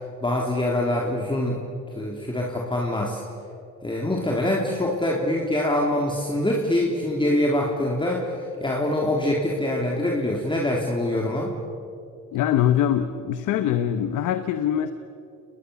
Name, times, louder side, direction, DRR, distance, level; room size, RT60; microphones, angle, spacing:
voice 1, 0.2-1.7 2.0-3.2 3.8-11.6, left 1 dB, 15° left, -2 dB, 3.5 m, -24 dB
voice 2, 12.3-14.9, left 10 dB, 90° left, 10 dB, 1.1 m, -23 dB
29.5 x 20.0 x 7.1 m, 2.6 s
cardioid pair, 90°, 30 cm